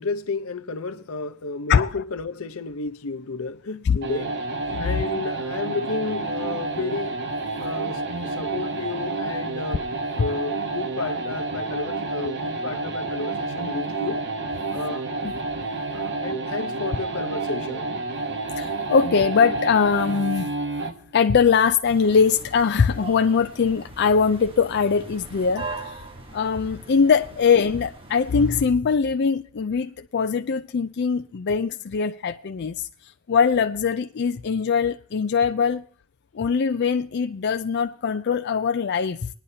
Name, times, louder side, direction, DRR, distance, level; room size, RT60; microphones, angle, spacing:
voice 1, 0.0-4.3 4.8-7.2 7.6-9.8 10.1-14.2 14.7-15.1 15.9-17.9, left 3 dB, 80° left, 0.8 m, -32 dB
sound 1, 4.0-21.0, right 3 dB, 60° right, 1.1 m, -29 dB
voice 2, 18.6-20.5 21.1-26.0 26.3-32.9 33.3-35.9 36.3-39.3, left 6 dB, 55° left, 0.4 m, -21 dB
sound 2, 21.9-28.6, right 3 dB, 25° right, 1.2 m, -40 dB
20.0 x 10.0 x 2.8 m
head